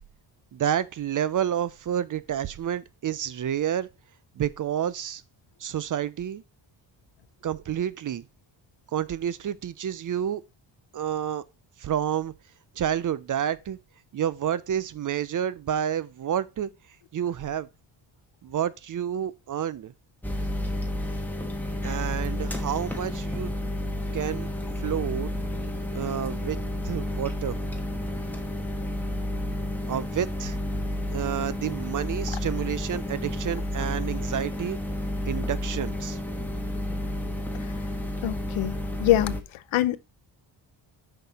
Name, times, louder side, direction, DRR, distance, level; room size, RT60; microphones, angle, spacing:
voice 1, 0.5-3.9 4.4-5.2 5.6-6.4 7.4-8.2 8.9-10.4 10.9-11.4 11.8-12.3 12.8-13.8 14.1-16.7 17.1-17.7 18.4-19.9 21.8-23.5 24.1-24.5 24.8-25.3 25.9-26.6 26.8-27.6 29.9-30.6 31.1-34.8 35.3-36.2, right 9 dB, 45° right, 0.5 m, -29 dB
sound 1, 20.2-39.4, left 1 dB, 5° left, 1.2 m, -31 dB
voice 2, 38.2-39.4 39.7-40.0, left 14 dB, 85° left, 0.7 m, -24 dB
5.9 x 5.6 x 4.1 m
cardioid pair, 105°, 47 cm